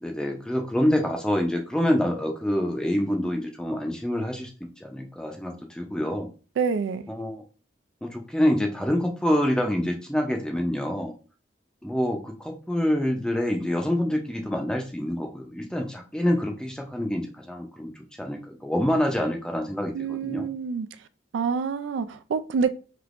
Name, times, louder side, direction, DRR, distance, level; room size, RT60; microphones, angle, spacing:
voice 1, 0.0-6.3 7.1-7.4 8.0-11.1 11.8-20.5, left 1 dB, 5° left, 3 dB, 0.5 m, -26 dB
voice 2, 6.6-7.1 19.9-20.9 21.3-22.7, right 5 dB, 85° right, 12 dB, 0.3 m, -27 dB
3.4 x 2.9 x 2.4 m, 0.36 s
head